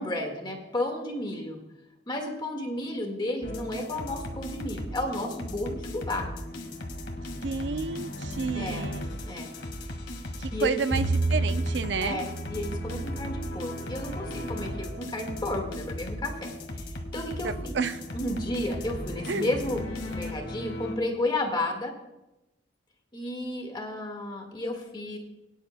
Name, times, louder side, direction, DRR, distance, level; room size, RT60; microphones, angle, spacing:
voice 1, 0.0-1.6 2.1-6.3 8.5-8.9 9.2-9.5 10.5-10.8 12.0-17.8 18.1-21.9 23.1-25.2, left 1 dB, 25° left, 2 dB, 1.7 m, -32 dB
sound 1, 3.4-20.9, left 1 dB, 80° left, 1.8 m, -37 dB
voice 2, 7.4-9.1 10.4-12.2 17.4-18.0 19.3-19.5, right 5 dB, 70° right, 12 dB, 0.5 m, -30 dB
Bowed string instrument, 10.9-17.2, right 2 dB, 5° left, 2.8 m, -33 dB
22.5 x 10.0 x 2.2 m, 0.97 s
head